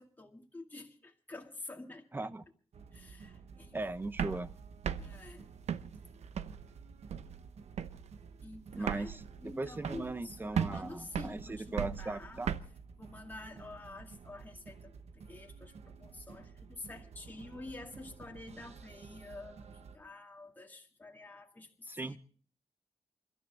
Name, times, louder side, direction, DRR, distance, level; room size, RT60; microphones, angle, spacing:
voice 1, 0.0-2.0 2.9-3.8 5.0-5.6 8.4-12.4 13.0-15.7 16.0-22.2, left 2 dB, 15° left, 2.1 m, -49 dB
voice 2, 2.1-2.4 3.7-4.5 8.7-12.6 21.9-22.2, right 2 dB, 20° right, 0.9 m, -38 dB
sound 1, 2.7-20.0, right 5 dB, 75° right, 1.2 m, -53 dB
sound 2, 4.0-6.7 7.1-7.5 7.8-8.1 8.4-8.5 8.7-10.3 10.5-12.6, right 8 dB, 90° right, 0.8 m, -37 dB
29.0 x 13.0 x 3.4 m
wide cardioid pair, 140°, 11 cm